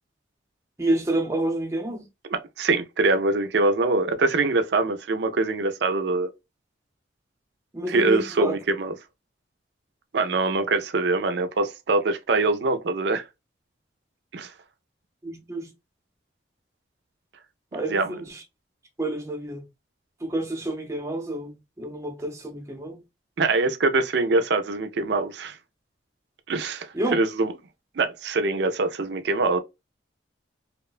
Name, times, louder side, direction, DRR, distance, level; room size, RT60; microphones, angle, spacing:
voice 1, 0.8-2.1 7.7-8.5 15.2-15.7 17.7-18.4 19.0-19.6 20.2-23.0 26.9-27.2, right 2 dB, 15° right, 0.6 m, -29 dB
voice 2, 2.3-6.3 7.9-8.9 10.1-13.2 14.3-14.5 17.7-18.2 23.4-25.6 26.5-27.5 28.0-29.6, right 3 dB, 65° right, 0.4 m, -24 dB
2.8 x 2.1 x 2.3 m
head